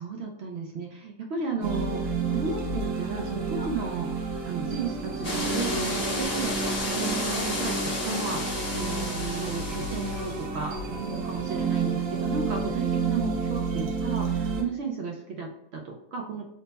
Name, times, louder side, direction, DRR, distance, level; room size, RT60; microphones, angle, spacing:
voice 1, 0.0-16.5, right 4 dB, 85° right, 1 dB, 0.5 m, -34 dB
sound 1, 1.6-14.6, right 4 dB, 60° right, 1.0 m, -30 dB
sound 2, 5.2-10.5, left 1 dB, 40° left, 0.6 m, -32 dB
3.1 x 2.2 x 3.9 m, 0.80 s
omnidirectional pair, 1.7 m